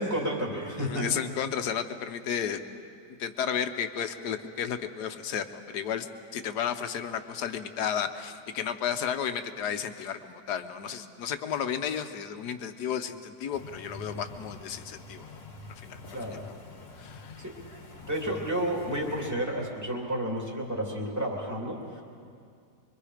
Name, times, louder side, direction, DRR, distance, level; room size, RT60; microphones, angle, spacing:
voice 1, 0.0-1.1 16.1-16.5 17.4-17.5 18.1-22.0, right 1 dB, 10° right, -2 dB, 3.0 m, -31 dB
voice 2, 0.8-2.6 3.2-6.1 6.3-15.4 15.8-16.0 16.3-16.4 17.0-17.4, left 8 dB, 80° left, 8 dB, 1.5 m, -33 dB
sound 1, 13.5-19.3, left 2 dB, 50° left, 2.0 m, -46 dB
25.5 x 23.5 x 5.0 m, 2.3 s
omnidirectional pair, 1.7 m